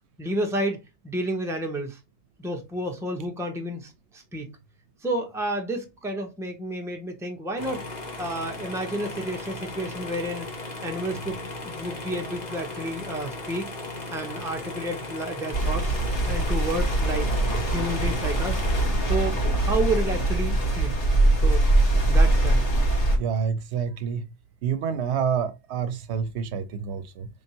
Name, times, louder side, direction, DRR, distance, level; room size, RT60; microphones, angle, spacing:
voice 1, 0.2-0.8 1.0-2.0 2.4-4.5 5.0-7.9 8.2-10.5 10.8-13.7 14.1-16.0 16.3-17.3 17.7-18.6 19.1-21.0 21.4-21.7 22.1-22.6, right 1 dB, 5° right, 0.6 m, -30 dB
sound 1, 7.6-18.9, left 2 dB, 40° left, 1.1 m, -36 dB
sound 2, 15.5-23.2, right 2 dB, 85° left, 1.6 m, -22 dB
voice 2, 23.2-24.2 24.6-27.3, right 7 dB, 75° right, 0.8 m, -28 dB
4.3 x 3.4 x 2.8 m
omnidirectional pair, 1.2 m